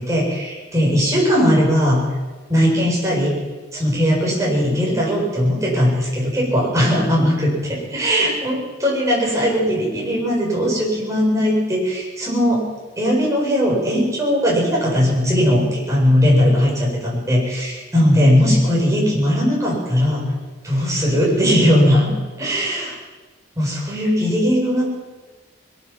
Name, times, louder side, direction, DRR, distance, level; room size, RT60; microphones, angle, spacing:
voice 1, 0.0-2.0 2.5-3.4 3.7-12.6 13.0-20.2 20.6-22.1 22.4-23.0 23.6-24.9, equal, 15° right, -4 dB, 7.8 m, -18 dB
22.5 x 18.0 x 7.5 m, 1.3 s
head